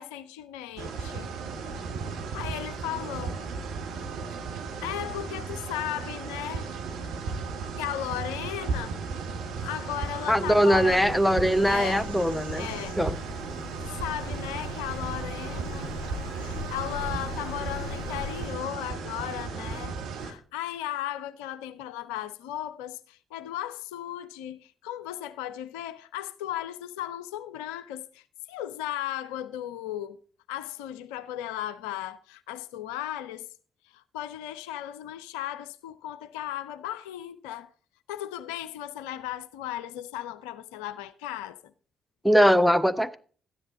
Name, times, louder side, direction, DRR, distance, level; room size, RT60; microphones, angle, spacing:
voice 1, 0.0-1.3 2.3-3.4 4.8-6.7 7.8-8.9 9.6-11.1 11.6-12.1 12.5-13.0 13.8-15.9 16.4-30.2 30.5-33.5 33.8-37.7 38.1-41.7, left 12 dB, 70° left, 0.4 m, -36 dB
sound 1, 0.8-20.3, right 5 dB, 65° right, 1.3 m, -35 dB
voice 2, 10.3-12.7 13.0-13.2 42.2-43.2, equal, 5° left, 0.8 m, -21 dB
Bird vocalization bird call bird song, 10.8-18.4, left 1 dB, 90° right, 1.1 m, -39 dB
12.5 x 9.9 x 3.9 m
figure-of-eight pair, 40°, 0 cm